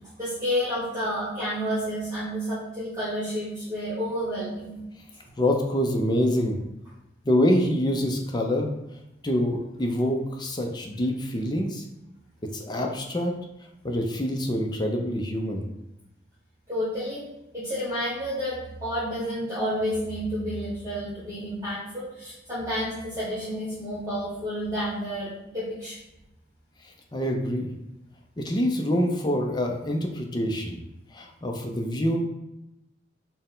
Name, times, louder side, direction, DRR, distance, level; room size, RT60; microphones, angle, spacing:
voice 1, 0.2-4.7 5.2-5.3 16.7-17.2 17.5-26.0, equal, 20° right, -10 dB, 1.1 m, -30 dB
voice 2, 5.4-6.6 7.2-8.7 9.2-11.8 12.5-13.3 13.8-15.7 27.1-27.7 28.4-30.8 31.1-32.2, equal, 25° left, 2 dB, 0.5 m, -25 dB
4.2 x 2.1 x 3.8 m, 0.91 s
head